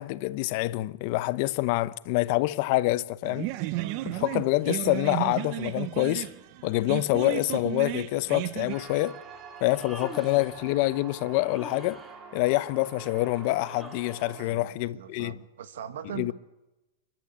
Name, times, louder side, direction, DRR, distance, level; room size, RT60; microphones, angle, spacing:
voice 1, 0.0-3.5 4.0-6.3 6.6-9.2 9.6-12.0 12.3-15.4 16.2-16.3, left 19 dB, 50° left, 0.9 m, -26 dB
sound 1, 3.2-8.7, right 17 dB, 45° right, 1.0 m, -33 dB
sound 2, 8.7-14.5, right 6 dB, 30° right, 2.7 m, -46 dB
Human voice, 9.6-10.6 11.4-12.2 13.6-14.3, equal, ahead, 2.5 m, -44 dB
voice 2, 14.4-16.3, right 10 dB, 75° right, 2.0 m, -41 dB
29.5 x 12.0 x 8.3 m
hypercardioid pair, 130°, 0 cm